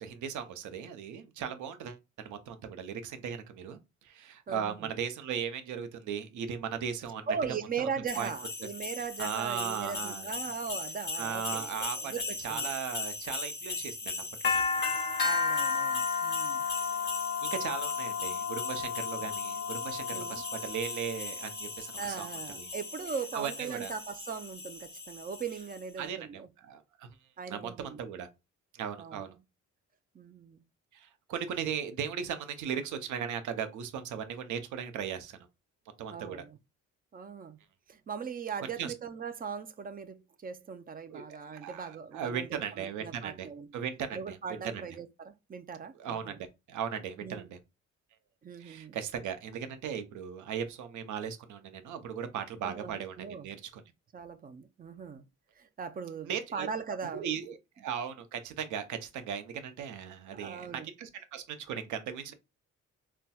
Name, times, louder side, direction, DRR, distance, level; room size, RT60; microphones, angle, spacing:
voice 1, 0.0-7.3 7.8-7.9 8.2-8.3 9.2-10.3 11.2-12.1 12.4-15.2 16.7-17.1 17.4-22.3 22.6-22.7 23.3-23.9 26.0-27.1 27.5-28.3 28.7-29.4 30.9-35.4 36.0-36.4 38.8-38.9 41.1-43.5 43.7-44.4 44.6-44.8 46.0-47.6 48.6-53.8 56.2-56.7 57.1-62.3, right 8 dB, 75° right, 0.7 m, -37 dB
voice 2, 4.5-5.0 7.3-11.7 12.0-12.7 15.2-16.6 19.1-19.3 20.1-20.4 22.0-26.5 27.4-28.0 29.0-29.3 30.1-30.6 36.1-36.6 37.1-37.6 37.9-43.7 44.1-46.4 47.2-47.5 48.4-49.0 52.6-53.5 54.1-55.2 55.6-57.4 60.3-60.9, right 6 dB, 30° right, 0.4 m, -39 dB
sound 1, 8.1-25.8, left 4 dB, 35° left, 1.0 m, -34 dB
4.1 x 2.2 x 2.3 m
cardioid pair, 90°, 30 cm